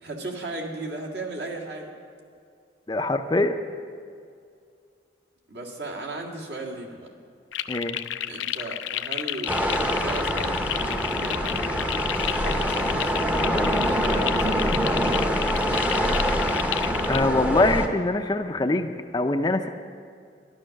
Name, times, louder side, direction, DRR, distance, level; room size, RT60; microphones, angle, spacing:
voice 1, 0.0-1.9 5.5-7.1 8.3-11.9 12.4-15.9, right 2 dB, 65° right, 0 dB, 1.9 m, -36 dB
voice 2, 2.9-3.6 7.7-8.0 17.1-19.7, left 2 dB, 25° left, 7 dB, 0.5 m, -23 dB
sound 1, 7.5-17.2, left 11 dB, 85° left, 0.4 m, -31 dB
sound 2, 9.5-17.9, equal, 10° right, 0.7 m, -25 dB
13.0 x 11.5 x 6.4 m, 2.3 s
head